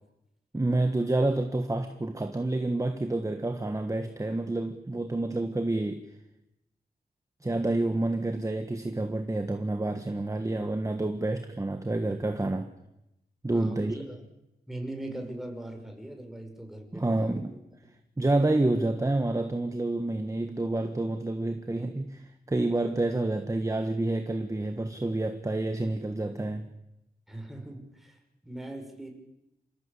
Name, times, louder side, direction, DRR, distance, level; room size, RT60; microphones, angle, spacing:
voice 1, 0.5-6.0 7.4-12.7 13.4-14.0 16.9-17.6 18.2-26.7, right 2 dB, 20° right, 1.5 m, -28 dB
voice 2, 13.5-14.2 14.7-17.4 27.3-28.1 28.4-29.1, right 1 dB, ahead, 5.6 m, -40 dB
27.5 x 16.5 x 8.5 m
wide cardioid pair, 95°, 17 cm